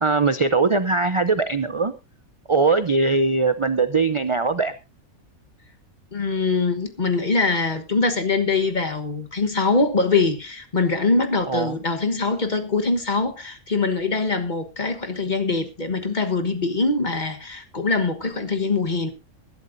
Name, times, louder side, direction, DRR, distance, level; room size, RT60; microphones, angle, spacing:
voice 1, 0.0-1.9 2.5-4.7 11.5-11.7, right 3 dB, 40° right, 12 dB, 0.4 m, -21 dB
voice 2, 6.1-19.1, left 3 dB, 35° left, 7 dB, 1.4 m, -23 dB
21.0 x 11.5 x 2.6 m, 0.27 s
omnidirectional pair, 1.5 m